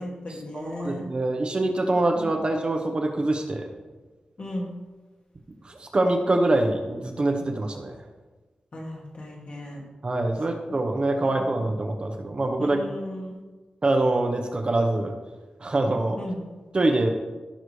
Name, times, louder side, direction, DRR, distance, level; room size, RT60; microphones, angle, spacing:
voice 1, 0.0-1.0 2.2-2.3 4.4-4.7 8.7-9.8 10.5-10.8 11.2-11.6 12.6-13.4 16.2-16.4, left 1 dB, 45° left, -2 dB, 2.3 m, -36 dB
voice 2, 0.5-3.7 5.6-8.0 10.0-12.8 13.8-15.1 15.6-16.2 16.7-17.1, right 2 dB, 40° right, 3 dB, 1.0 m, -24 dB
15.5 x 6.7 x 3.3 m, 1.3 s
wide cardioid pair, 130°, 3 cm